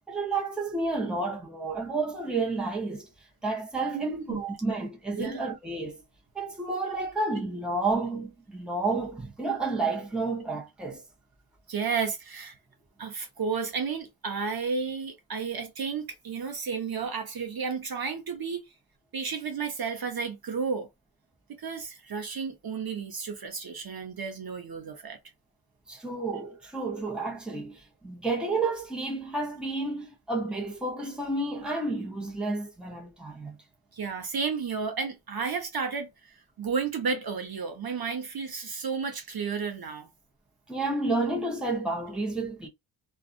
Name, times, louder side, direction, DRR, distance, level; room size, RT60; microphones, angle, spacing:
voice 1, 0.1-3.1 3.4-6.0 6.3-11.0 25.9-33.6 40.7-42.7, right 3 dB, ahead, 0.9 m, -31 dB
voice 2, 3.9-4.4 5.1-5.5 11.7-12.6 13.0-18.6 19.1-20.9 21.5-25.2 33.9-40.1, right 5 dB, 45° right, 0.8 m, -32 dB
2.6 x 2.4 x 2.4 m
cardioid pair, 80°, 50 cm